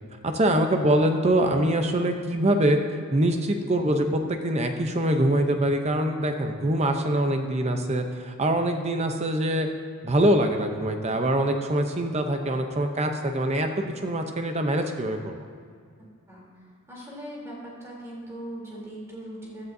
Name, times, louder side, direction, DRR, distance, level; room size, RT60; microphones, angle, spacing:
voice 1, 0.2-2.8 3.1-9.7 10.0-15.4, right 1 dB, 30° right, 5 dB, 0.7 m, -24 dB
voice 2, 16.3-19.6, right 1 dB, 15° right, -6 dB, 3.4 m, -40 dB
15.5 x 11.5 x 2.7 m, 2.1 s
head